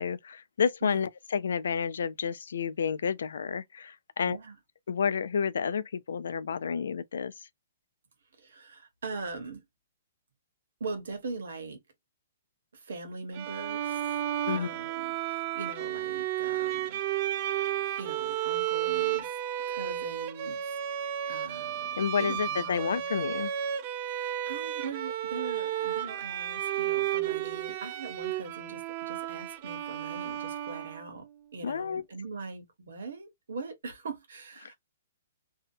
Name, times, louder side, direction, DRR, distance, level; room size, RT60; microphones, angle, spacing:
voice 1, 0.0-4.4 4.9-7.3 14.5-14.7 22.0-23.5 31.6-32.0 34.6-34.7, left 6 dB, 75° left, 0.3 m, -30 dB
voice 2, 4.2-4.6 8.4-9.6 10.8-11.8 12.7-14.0 14.5-17.0 18.0-19.3 19.7-20.6 20.9-23.1 24.1-31.3 31.5-34.7, right 3 dB, 75° right, 1.1 m, -41 dB
Bowed string instrument, 13.3-31.2, right 11 dB, 30° right, 0.3 m, -33 dB
2.7 x 2.0 x 2.6 m
hypercardioid pair, 175°, 0 cm